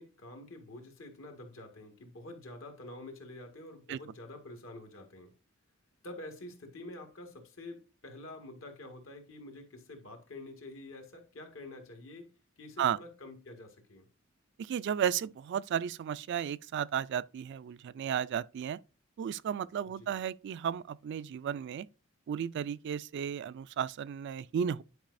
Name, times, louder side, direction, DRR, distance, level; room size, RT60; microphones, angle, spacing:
voice 1, 0.0-5.3 6.0-12.3 12.6-14.1 19.8-20.2, left 2 dB, 70° left, 1.8 m, -47 dB
voice 2, 14.6-18.8 19.2-21.9 22.3-24.8, right 8 dB, 60° right, 0.3 m, -34 dB
10.5 x 4.8 x 2.6 m
head